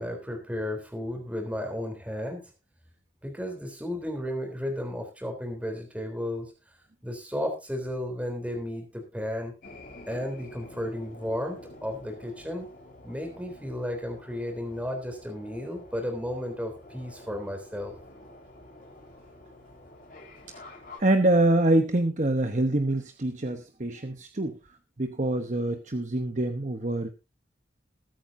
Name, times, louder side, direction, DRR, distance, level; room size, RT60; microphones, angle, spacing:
voice 1, 0.0-2.4 3.2-6.5 7.0-9.5 10.1-12.7 13.0-17.9, left 1 dB, 5° right, 4 dB, 3.5 m, -33 dB
sound 1, 9.6-21.0, left 1 dB, 50° left, 5.8 m, -48 dB
voice 2, 21.0-24.6 25.0-27.1, right 1 dB, 40° right, 7 dB, 1.0 m, -25 dB
21.5 x 8.9 x 2.7 m, 0.28 s
head